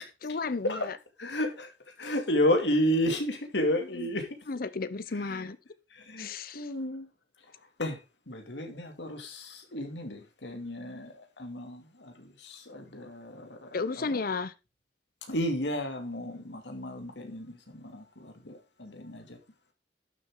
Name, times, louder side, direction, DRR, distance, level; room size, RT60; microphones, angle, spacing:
voice 1, 0.2-1.0 3.9-4.1 4.5-5.6 6.2-6.7 13.7-14.5, left 4 dB, 55° left, 0.7 m, -33 dB
voice 2, 1.2-1.7 2.0-4.3 5.1-5.5 5.9-7.1 7.8-8.0 8.3-13.7 14.1-14.2 15.3-19.4, left 1 dB, 85° left, 2.6 m, -32 dB
12.0 x 7.2 x 3.8 m
head